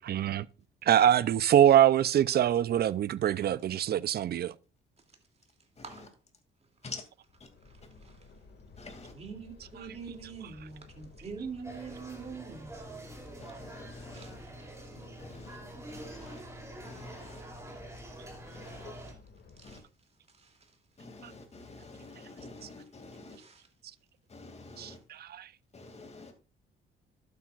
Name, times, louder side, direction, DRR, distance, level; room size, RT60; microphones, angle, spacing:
voice 1, 0.1-0.5 0.8-4.5 21.2-21.3 24.8-25.5, right 10 dB, 55° right, 0.5 m, -24 dB
voice 2, 5.8-6.2 7.6-8.3 9.1-13.0 14.1-14.5 15.5-15.6 16.2-16.4 17.2-17.4 19.6-19.8 20.3-20.7 21.8-22.9 23.3-23.7 24.8-24.9, right 5 dB, 35° right, 2.7 m, -46 dB
sound 1, 7.3-19.8, left 4 dB, 60° left, 2.1 m, -55 dB
voice 3, 8.8-9.1 13.4-14.4 15.2-15.6 15.9-16.4 16.8-17.4 18.5-18.9 19.6-19.8 21.0-23.4 24.3-25.0 25.7-26.3, left 3 dB, 35° left, 2.4 m, -47 dB
sound 2, 11.6-19.1, right 1 dB, 15° right, 3.2 m, -46 dB
12.0 x 8.5 x 2.4 m
cardioid pair, 90°, 20 cm